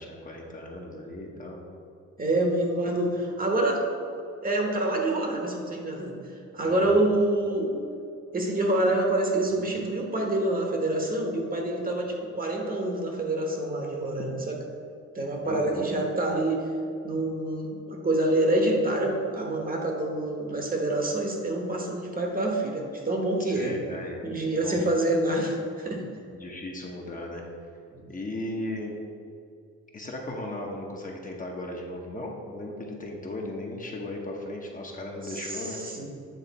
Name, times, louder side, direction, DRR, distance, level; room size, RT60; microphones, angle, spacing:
voice 1, 0.0-1.6 6.6-7.0 15.4-15.9 23.5-24.2 24.5-24.9 26.3-27.4 28.1-28.9 29.9-35.8, left 1 dB, 25° left, -1 dB, 0.9 m, -36 dB
voice 2, 2.2-3.8 4.4-6.2 6.5-7.8 8.3-14.6 15.1-16.6 17.0-23.8 24.2-26.0 27.9-28.0 35.2-36.1, right 1 dB, 30° right, 1 dB, 1.1 m, -27 dB
8.3 x 3.3 x 4.0 m, 2.4 s
cardioid pair, 90°, 30 cm